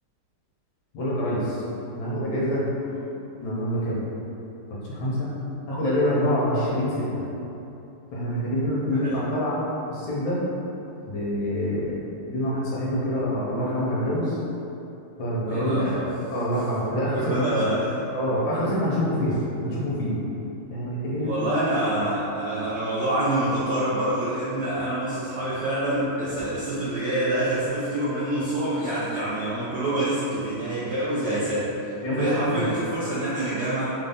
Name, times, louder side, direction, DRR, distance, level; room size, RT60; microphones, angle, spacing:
voice 1, 0.9-1.6 1.9-2.6 3.4-4.0 4.8-5.3 5.7-7.2 8.1-9.6 9.9-10.4 11.1-11.9 12.3-14.4 15.2-16.0 16.3-17.5 18.1-19.4 19.6-20.2 20.7-21.3 32.0-32.7, equal, 70° left, -7 dB, 1.4 m, -26 dB
voice 2, 15.5-16.1 17.1-18.1 21.2-33.9, right 1 dB, 75° right, -10 dB, 0.9 m, -26 dB
3.9 x 2.6 x 3.4 m, 2.9 s
omnidirectional pair, 2.4 m